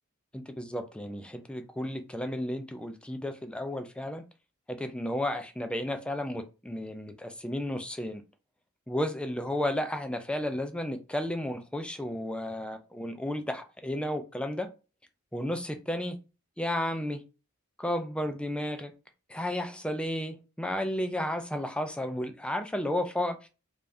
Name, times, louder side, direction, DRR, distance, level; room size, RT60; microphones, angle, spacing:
voice 1, 0.3-4.2 4.7-8.2 8.9-14.7 15.3-16.1 16.6-17.2 17.8-18.9 19.3-23.5, left 1 dB, 5° left, 7 dB, 0.4 m, -33 dB
3.4 x 3.3 x 2.6 m, 0.31 s
head